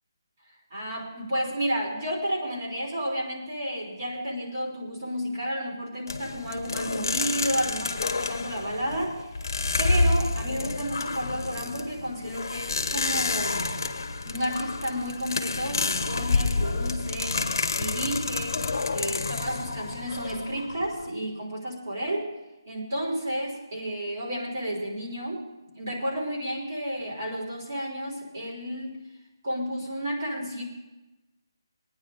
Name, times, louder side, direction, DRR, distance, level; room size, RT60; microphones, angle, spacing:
voice 1, 0.7-9.4 9.8-13.8 14.3-18.6 18.9-22.3 22.7-25.4 25.7-29.0 29.4-30.6, equal, 40° right, -2 dB, 3.5 m, -31 dB
sound 1, 6.1-21.1, left 3 dB, 50° left, 1.0 m, -29 dB
22.5 x 9.6 x 3.7 m, 1.1 s
hypercardioid pair, 175°, 2 cm